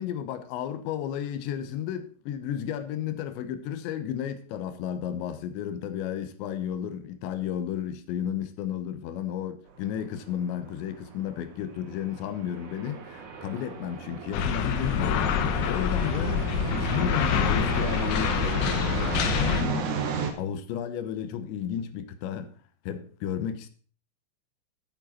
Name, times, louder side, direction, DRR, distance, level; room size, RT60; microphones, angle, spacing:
voice 1, 0.0-19.0 19.4-19.9 20.4-22.5 22.9-23.7, left 9 dB, 90° left, 3.3 m, -33 dB
sound 1, 9.7-20.3, right 5 dB, 65° right, 2.1 m, -35 dB
sound 2, 14.3-19.6, left 7 dB, 75° left, 2.9 m, -26 dB
12.0 x 9.2 x 4.3 m
omnidirectional pair, 5.0 m